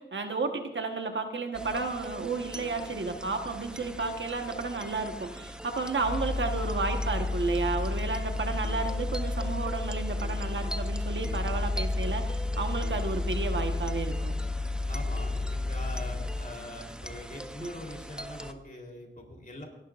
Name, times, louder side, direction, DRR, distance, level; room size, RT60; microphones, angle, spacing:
voice 1, 0.0-14.3 17.6-17.7, right 3 dB, 75° right, 5 dB, 1.3 m, -32 dB
sound 1, 1.5-18.5, right 1 dB, 5° right, 0.7 m, -43 dB
sound 2, 6.0-16.4, left 2 dB, 90° left, 1.6 m, -31 dB
voice 2, 14.9-19.7, left 1 dB, 45° left, 0 dB, 3.6 m, -43 dB
28.0 x 11.0 x 2.5 m, 1.0 s
wide cardioid pair, 65°, 20 cm